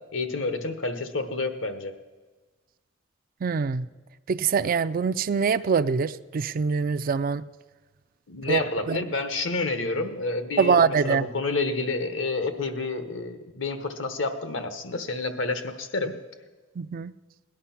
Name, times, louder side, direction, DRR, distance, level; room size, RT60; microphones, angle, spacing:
voice 1, 0.1-2.0 8.3-16.2, left 3 dB, 75° left, 9 dB, 1.1 m, -29 dB
voice 2, 3.4-3.9 4.3-7.4 8.5-8.6 8.9-9.0 10.6-11.3 16.8-17.1, right 5 dB, 45° right, 14 dB, 0.4 m, -24 dB
18.0 x 11.0 x 5.8 m, 1.3 s
head